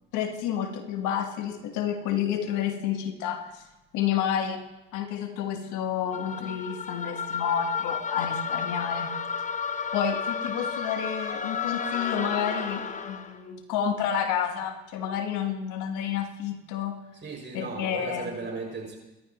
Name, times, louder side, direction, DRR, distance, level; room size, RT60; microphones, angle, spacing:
voice 1, 0.1-3.6 3.9-4.6 4.9-9.1 9.9-17.0 17.5-18.4, left 8 dB, 80° left, 6 dB, 1.5 m, -30 dB
sound 1, 6.1-13.4, left 6 dB, 25° left, 1.0 m, -32 dB
voice 2, 17.1-19.0, right 3 dB, 40° right, 0 dB, 6.4 m, -36 dB
25.5 x 12.0 x 3.1 m, 1.0 s
supercardioid pair, 80°, 30 cm